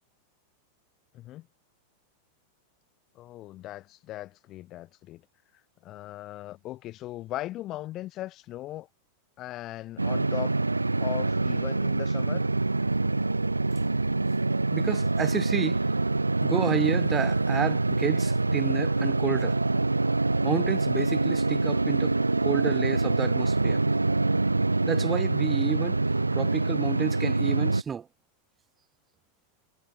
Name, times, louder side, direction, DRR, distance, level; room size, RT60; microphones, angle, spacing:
voice 1, 1.1-1.5 3.2-5.2 5.8-8.9 9.4-10.5 11.0-12.5 26.2-26.5, left 15 dB, 35° left, 6.9 m, -38 dB
sound 1, 10.0-27.8, right 2 dB, 80° right, 0.7 m, -25 dB
voice 2, 14.7-15.9 16.4-19.6 20.4-23.8 24.8-28.1, right 7 dB, 20° right, 4.8 m, -31 dB
figure-of-eight pair, 90°, 0 cm